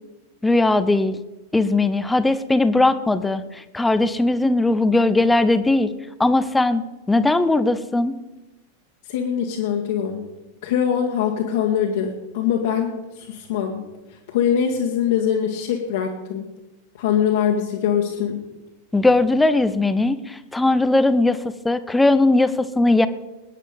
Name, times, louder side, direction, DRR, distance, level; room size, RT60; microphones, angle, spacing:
voice 1, 0.4-1.2 1.5-5.9 6.2-6.8 7.1-8.2 18.9-23.1, left 2 dB, 5° left, 12 dB, 0.8 m, -19 dB
voice 2, 9.1-10.3 10.6-13.8 14.3-16.4 17.0-18.4, left 8 dB, 55° left, -1 dB, 1.8 m, -23 dB
21.0 x 9.6 x 5.2 m, 1.0 s
figure-of-eight pair, 90°, 0 cm